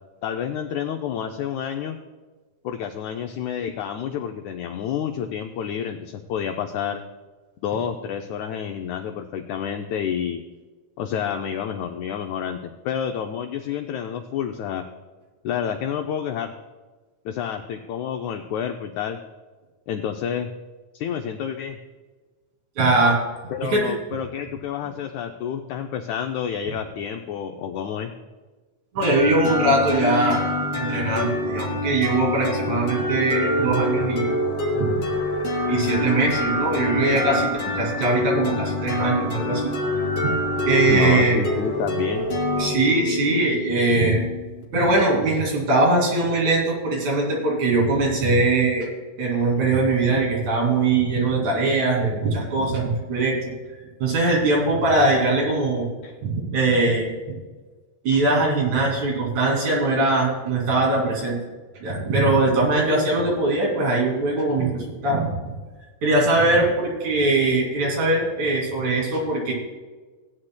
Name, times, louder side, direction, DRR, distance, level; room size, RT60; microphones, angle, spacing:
voice 1, 0.2-2.0 2.6-7.0 7.6-10.4 11.0-14.8 15.4-16.5 17.2-19.2 19.9-20.5 20.9-21.8 23.5-28.1 40.9-42.3 49.2-49.4 56.0-56.1, left 8 dB, 85° left, 5 dB, 1.6 m, -29 dB
voice 2, 22.8-23.2 23.6-23.9 28.9-30.4 30.7-34.4 34.7-35.1 35.7-39.7 40.1-40.3 40.7-41.4 42.6-44.2 44.7-48.9 49.2-53.4 54.0-55.9 56.2-57.4 58.0-61.4 61.8-65.3 66.0-69.5, right 2 dB, 60° right, -2 dB, 3.8 m, -21 dB
sound 1, 29.0-44.6, left 1 dB, 45° left, 2.5 m, -26 dB
17.5 x 9.7 x 2.2 m, 1.3 s
omnidirectional pair, 3.9 m